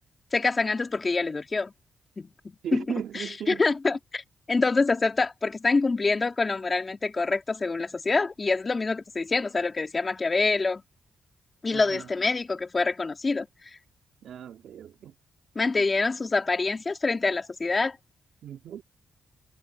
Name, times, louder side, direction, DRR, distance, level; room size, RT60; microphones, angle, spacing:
voice 1, 0.3-1.7 2.2-2.3 2.7-2.8 3.5-10.8 11.6-13.5 15.5-18.0, left 3 dB, 30° left, 2.7 m, -26 dB
voice 2, 2.6-3.7 11.7-12.1 14.2-15.1 18.4-18.8, right 9 dB, 75° right, 2.3 m, -37 dB
cardioid pair, 105°, 0 cm